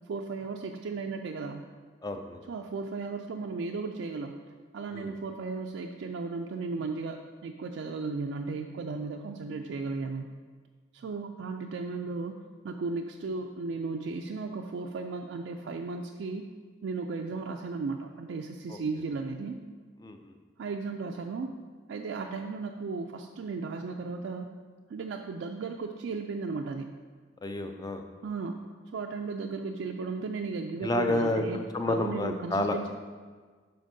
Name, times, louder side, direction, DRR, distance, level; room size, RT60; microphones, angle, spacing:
voice 1, 0.1-1.6 2.5-4.3 4.7-10.3 10.9-12.4 12.6-16.5 16.8-19.6 20.6-21.5 21.9-24.5 24.9-26.9 28.2-28.6 28.9-31.6 31.9-32.9, right 4 dB, 70° right, 2 dB, 0.3 m, -35 dB
voice 2, 2.0-2.4 4.9-5.1 18.7-18.8 20.0-20.3 27.4-28.0 30.8-32.8, left 1 dB, 20° left, 6 dB, 0.3 m, -30 dB
11.5 x 4.3 x 2.7 m, 1.5 s
head